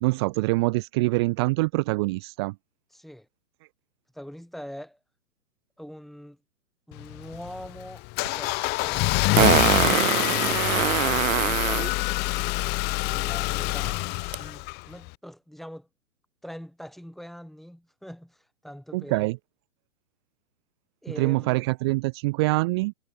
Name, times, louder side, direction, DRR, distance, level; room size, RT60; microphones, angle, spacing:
voice 1, 0.0-2.5 18.9-19.4 21.2-22.9, right 23 dB, 20° right, 0.4 m, -24 dB
voice 2, 2.9-3.3 4.1-5.0 5.8-6.4 6.9-8.1 10.9-14.0 14.4-15.9 16.4-19.3 21.0-21.6, equal, ahead, 5.0 m, -43 dB
Car / Engine starting, 6.9-15.1, left 26 dB, 25° left, 0.9 m, -26 dB
Fart, 8.3-8.4 9.4-11.9 14.3-14.4, right 10 dB, 85° right, 0.6 m, -23 dB
hypercardioid pair, 120°, 39 cm